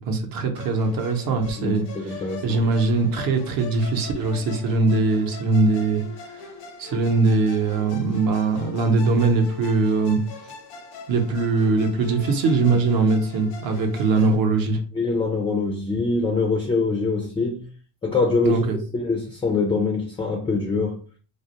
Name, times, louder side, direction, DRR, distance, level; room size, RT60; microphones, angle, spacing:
voice 1, 0.0-6.4 6.8-10.2 11.1-14.8 18.4-18.8, right 3 dB, 50° right, 0.8 m, -21 dB
Musical instrument, 0.5-14.4, left 5 dB, 85° left, 0.8 m, -41 dB
voice 2, 1.6-2.6 14.9-17.7 18.0-21.0, left 3 dB, 15° left, 0.4 m, -24 dB
2.4 x 2.1 x 2.8 m
supercardioid pair, 110°, 43 cm